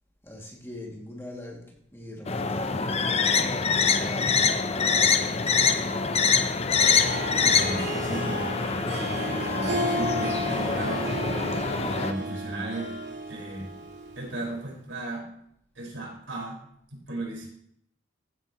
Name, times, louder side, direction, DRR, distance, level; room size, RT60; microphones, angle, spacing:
voice 1, 0.2-4.9, left 1 dB, 15° left, -2 dB, 2.5 m, -42 dB
sound 1, 2.3-12.1, left 5 dB, 35° left, 0.7 m, -25 dB
Harp, 6.8-14.5, equal, 60° right, 2.4 m, -33 dB
voice 2, 7.4-8.5 8.9-12.9 13.3-13.7 14.2-15.3 15.8-16.6 16.9-17.5, right 2 dB, 85° right, -3 dB, 5.3 m, -36 dB
15.5 x 9.4 x 3.1 m, 0.70 s
head